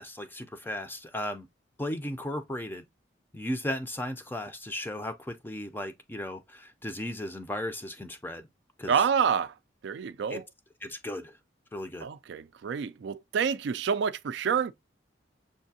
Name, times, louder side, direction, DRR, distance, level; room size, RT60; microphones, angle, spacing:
voice 1, 0.0-1.5 1.8-2.8 3.3-8.4 8.8-8.9 10.3-10.4 10.8-11.3 11.7-12.1, left 1 dB, 10° left, 0.4 m, -35 dB
voice 2, 8.9-9.6 9.8-10.5 12.0-14.7, right 7 dB, 70° right, 0.3 m, -28 dB
6.5 x 2.6 x 2.7 m
head